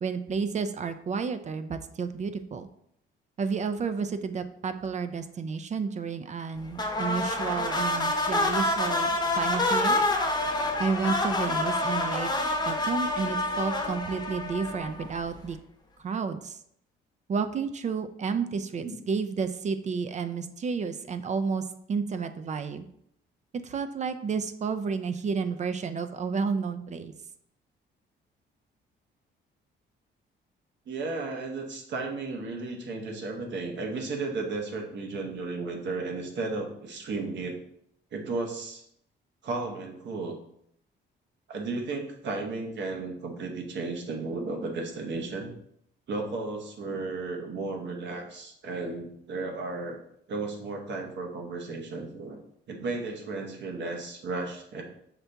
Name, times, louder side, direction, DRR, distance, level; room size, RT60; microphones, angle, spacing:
voice 1, 0.0-2.7 3.4-10.0 10.8-12.3 12.7-15.6 16.0-16.6 17.3-21.6 21.9-22.9 23.6-27.1, right 5 dB, 35° right, 10 dB, 0.4 m, -31 dB
sound 1, 6.8-15.2, left 2 dB, 20° left, 0.8 m, -27 dB
voice 2, 30.9-37.6 38.1-38.8 39.4-40.4 41.5-45.5 46.1-50.0 50.3-52.4 52.7-54.8, right 3 dB, 65° right, 3 dB, 1.0 m, -34 dB
5.8 x 2.7 x 3.4 m, 0.71 s
cardioid pair, 90°, 20 cm